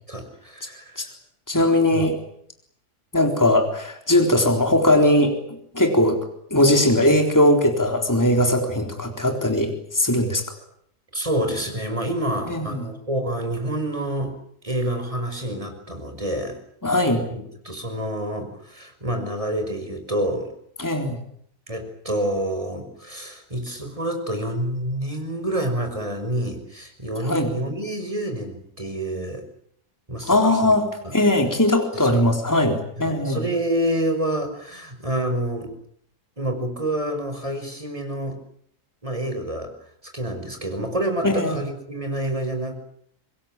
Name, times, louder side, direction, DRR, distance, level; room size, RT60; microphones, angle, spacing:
voice 1, 0.1-1.1 1.5-2.1 11.1-14.3 14.6-16.6 17.3-20.5 21.7-29.4 30.1-30.8 31.0-31.1 31.9-32.2 33.0-35.7 36.4-38.4 39.0-39.7 40.1-42.7, right 1 dB, 20° right, 5 dB, 5.7 m, -28 dB
voice 2, 1.5-2.2 3.1-5.4 5.7-6.2 6.5-10.4 12.5-12.9 16.8-17.2 20.8-21.2 27.2-27.5 30.3-30.9 31.1-33.4 41.2-41.6, left 1 dB, 10° left, 3 dB, 3.9 m, -19 dB
25.5 x 21.0 x 9.1 m, 0.70 s
omnidirectional pair, 1.7 m